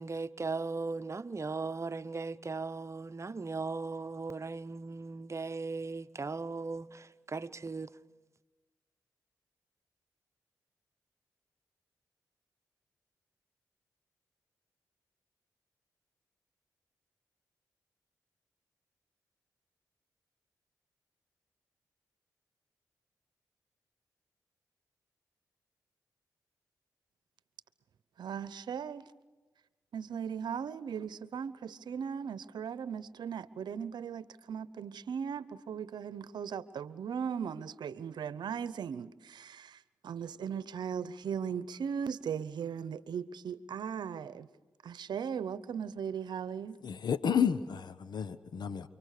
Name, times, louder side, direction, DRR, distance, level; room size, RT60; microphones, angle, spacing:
voice 1, 0.0-8.0, right 4 dB, 40° right, 0.9 m, -38 dB
voice 2, 28.2-29.1 29.9-44.5 44.8-46.8, right 7 dB, 80° right, 0.9 m, -38 dB
voice 3, 46.8-48.9, left 7 dB, 70° left, 0.9 m, -31 dB
29.5 x 24.0 x 6.7 m
supercardioid pair, 45°, 7 cm